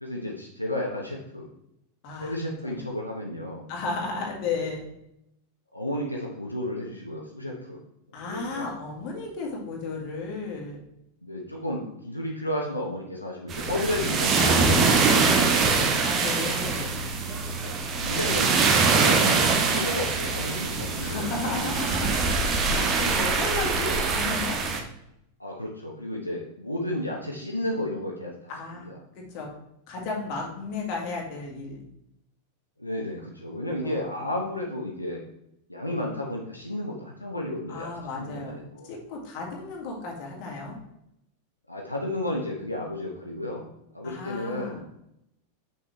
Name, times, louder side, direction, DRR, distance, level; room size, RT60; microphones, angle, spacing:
voice 1, 0.0-1.5 2.2-3.6 4.5-4.6 5.7-7.8 8.2-8.7 11.2-16.1 17.6-17.7 18.0-21.7 22.0-22.2 23.5-23.9 25.4-28.5 28.8-29.0 32.8-35.2 35.7-38.9 41.7-43.6 43.9-44.8, left 1 dB, 85° left, -2 dB, 0.9 m, -33 dB
voice 2, 2.0-2.4 2.6-2.8 3.7-4.9 8.1-10.8 16.0-17.0 21.0-22.3 23.0-24.6 28.5-29.5 29.9-31.8 33.8-34.0 37.7-40.8 44.0-44.8, left 3 dB, 40° left, -1 dB, 2.0 m, -34 dB
sound 1, 13.5-24.8, right 4 dB, 30° right, 0.9 m, -23 dB
6.1 x 6.0 x 3.1 m, 0.80 s
figure-of-eight pair, 90°, 0 cm